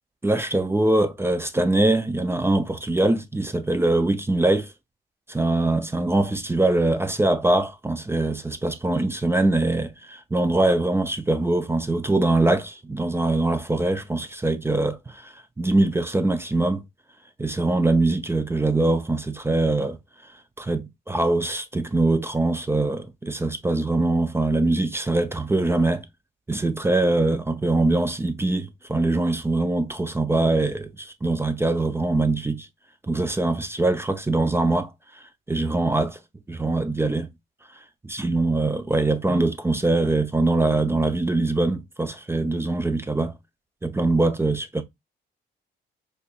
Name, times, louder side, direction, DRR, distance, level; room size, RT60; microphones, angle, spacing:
voice 1, 0.2-4.7 5.3-16.8 17.4-20.0 20.6-26.1 26.5-32.7 33.0-35.2 35.5-36.2 36.5-37.3 38.0-43.4 43.8-44.8, right 2 dB, 10° right, 0.4 m, -23 dB
4.3 x 2.5 x 2.2 m
cardioid pair, 90°, 20 cm